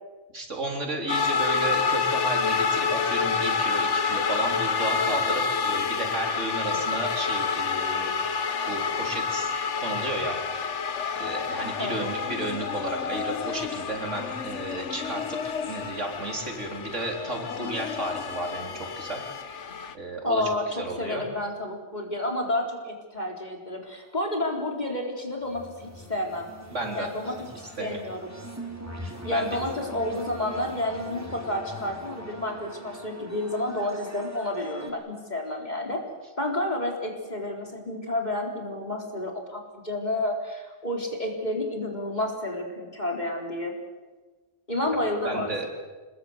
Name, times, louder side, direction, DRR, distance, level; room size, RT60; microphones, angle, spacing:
voice 1, 0.3-8.1 8.7-9.5 9.8-10.4 11.2-19.2 19.9-20.5 20.8-21.3 26.7-27.3 27.8-28.0 29.0-29.5 45.2-45.7, right 1 dB, 85° right, 1 dB, 4.4 m, -33 dB
sound 1, 1.1-19.9, left 5 dB, 80° left, 1.4 m, -28 dB
voice 2, 20.2-26.5 26.9-27.3 27.8-28.3 29.2-36.0 36.4-43.7 44.7-45.7, left 1 dB, 35° left, 1 dB, 4.2 m, -30 dB
sound 2, 23.9-34.9, equal, 15° right, 3.9 m, -43 dB
25.5 x 21.5 x 8.1 m, 1.3 s
omnidirectional pair, 1.2 m